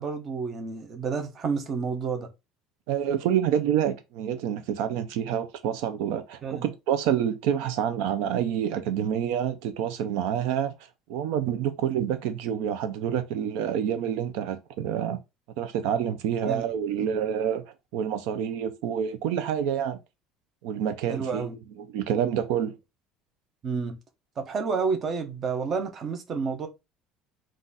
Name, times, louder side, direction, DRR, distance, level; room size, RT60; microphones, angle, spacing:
voice 1, 0.0-2.3 6.4-6.6 16.4-16.6 21.1-21.6 23.6-24.0 24.4-26.7, right 5 dB, 30° right, 0.7 m, -30 dB
voice 2, 2.9-10.7 11.1-15.2 15.6-17.6 17.9-20.0 20.6-22.7, right 9 dB, 75° right, 0.5 m, -27 dB
3.9 x 2.5 x 4.0 m
cardioid pair, 170°, 0 cm